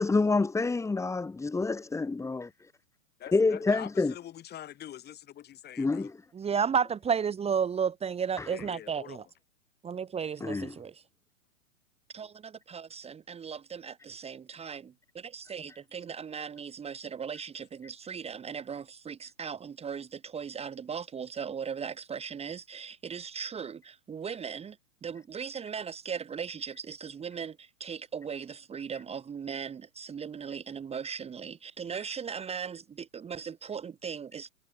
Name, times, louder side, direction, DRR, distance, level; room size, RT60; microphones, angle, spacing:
voice 1, 0.0-2.5 3.3-4.1 5.8-6.1 8.4-8.5 10.4-10.8 31.9-32.0, left 3 dB, 5° left, 2.4 m, -27 dB
voice 2, 3.2-6.1 8.5-9.2, left 11 dB, 25° left, 5.5 m, -45 dB
voice 3, 6.3-9.2 9.8-10.9 12.1-14.9 15.3-24.7 25.0-34.5, right 7 dB, 15° right, 2.5 m, -35 dB
hypercardioid pair, 120°, 40 cm